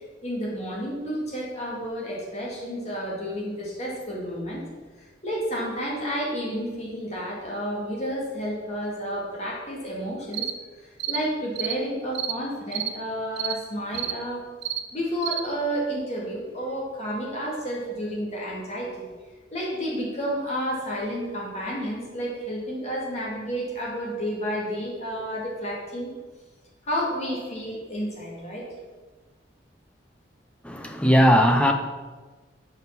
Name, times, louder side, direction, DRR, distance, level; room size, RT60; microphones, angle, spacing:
voice 1, 0.0-4.7 5.0-10.5 11.1-14.4 14.9-19.1 19.5-26.1 26.8-28.7, equal, 35° left, -4 dB, 2.3 m, -31 dB
sound 1, 10.3-10.6 11.0-11.2 11.6-11.8 12.1-12.4 12.7-12.9 13.4-13.6 13.9-14.2 14.6-14.8 15.2-15.4, right 10 dB, 70° right, 0.6 m, -29 dB
voice 2, 30.6-31.7, equal, 5° left, 4 dB, 0.6 m, -18 dB
7.8 x 5.6 x 6.0 m, 1.3 s
head